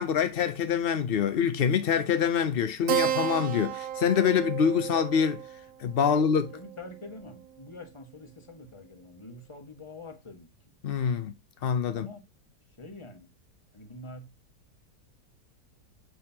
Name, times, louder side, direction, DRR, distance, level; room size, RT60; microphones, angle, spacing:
voice 1, 0.0-5.4 5.8-6.5 10.8-11.3 11.6-12.1, left 7 dB, 75° left, 0.5 m, -25 dB
Keyboard (musical), 2.9-7.8, right 10 dB, 70° right, 1.0 m, -33 dB
voice 2, 6.0-10.5 11.9-12.2 12.8-13.3 13.7-14.3, left 2 dB, 20° left, 1.2 m, -45 dB
6.9 x 6.3 x 2.8 m
omnidirectional pair, 1.8 m